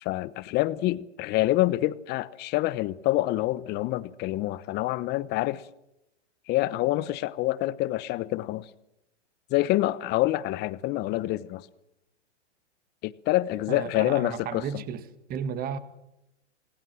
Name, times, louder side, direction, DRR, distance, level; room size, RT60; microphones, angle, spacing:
voice 1, 0.0-5.6 6.5-8.7 9.5-11.7 13.0-14.8, left 16 dB, 30° left, 1.0 m, -27 dB
voice 2, 13.7-15.0 15.3-15.8, right 7 dB, 25° right, 1.8 m, -33 dB
27.0 x 19.5 x 7.6 m
hypercardioid pair, 125°, 35 cm